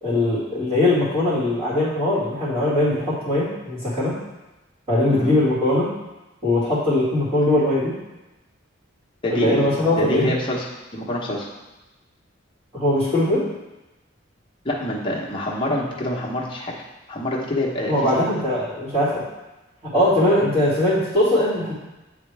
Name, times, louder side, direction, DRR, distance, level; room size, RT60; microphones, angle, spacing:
voice 1, 0.0-4.2 4.9-5.9 6.4-7.9 9.3-10.2 12.7-13.4 17.9-19.2 19.9-21.7, left 1 dB, 30° right, -11 dB, 2.2 m, -20 dB
voice 2, 9.2-9.7 10.0-11.5 14.6-16.7 17.1-18.2, left 1 dB, 25° left, -4 dB, 1.1 m, -26 dB
9.5 x 3.3 x 3.4 m, 1.1 s
head